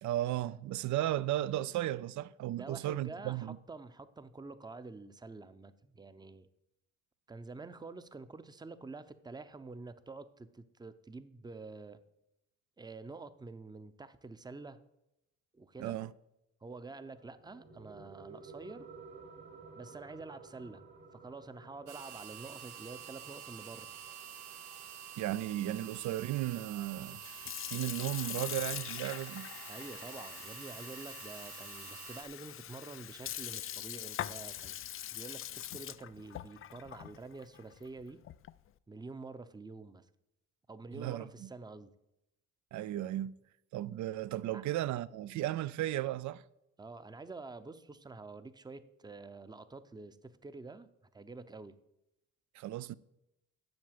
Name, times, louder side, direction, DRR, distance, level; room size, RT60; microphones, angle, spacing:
voice 1, 0.0-3.6 15.8-16.1 25.2-27.2 27.7-29.5 40.9-41.5 42.7-43.4 43.7-46.4 52.5-52.9, right 14 dB, 70° right, 0.5 m, -35 dB
voice 2, 2.6-6.5 7.3-12.0 12.8-14.8 15.5-16.0 16.6-18.9 19.7-20.8 21.1-23.9 29.7-34.8 35.1-38.2 38.9-40.1 40.7-41.9 44.5-44.6 46.8-51.7, right 3 dB, 15° right, 0.6 m, -48 dB
sound 1, 16.9-27.9, right 4 dB, 40° right, 1.4 m, -55 dB
sound 2, 21.9-32.2, right 9 dB, 85° right, 1.1 m, -48 dB
Sink (filling or washing) / Fill (with liquid), 27.1-38.7, left 11 dB, 45° left, 0.4 m, -43 dB
7.9 x 6.7 x 7.3 m
cardioid pair, 90°, 30 cm